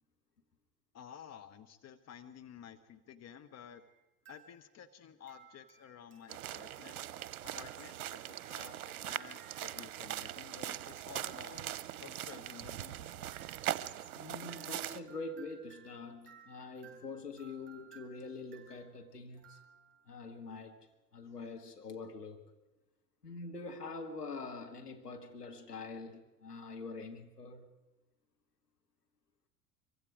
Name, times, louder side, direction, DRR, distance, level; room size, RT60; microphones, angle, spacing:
voice 1, 0.9-3.9 4.3-7.0 7.4-11.7 12.0-13.4, left 8 dB, 35° left, 1.3 m, -53 dB
sound 1, 3.7-4.9 5.3-20.2, right 7 dB, 25° right, 7.4 m, -62 dB
sound 2, 6.3-15.0, right 12 dB, 70° right, 0.8 m, -41 dB
voice 2, 14.2-19.6 20.1-20.9 21.1-22.5 23.2-27.7, left 3 dB, 90° left, 1.8 m, -45 dB
24.5 x 24.0 x 5.0 m
figure-of-eight pair, 75°, 45 cm